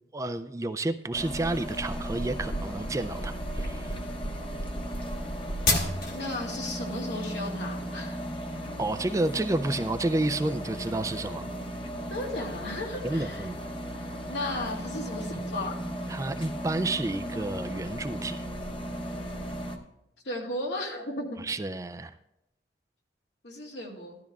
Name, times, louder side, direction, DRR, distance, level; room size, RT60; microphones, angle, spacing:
voice 1, 0.1-4.0 8.8-11.5 13.0-13.6 16.1-18.4 21.4-22.1, right 2 dB, 20° right, 10 dB, 0.3 m, -30 dB
sound 1, 1.1-19.8, equal, 30° left, 0.9 m, -36 dB
sound 2, 1.2-6.3, left 1 dB, 50° left, 1.7 m, -32 dB
voice 2, 6.1-8.2 12.1-13.5 14.3-15.8 20.2-21.4 23.4-24.2, left 2 dB, 80° left, -2 dB, 2.3 m, -35 dB
15.5 x 12.5 x 2.4 m, 0.85 s
head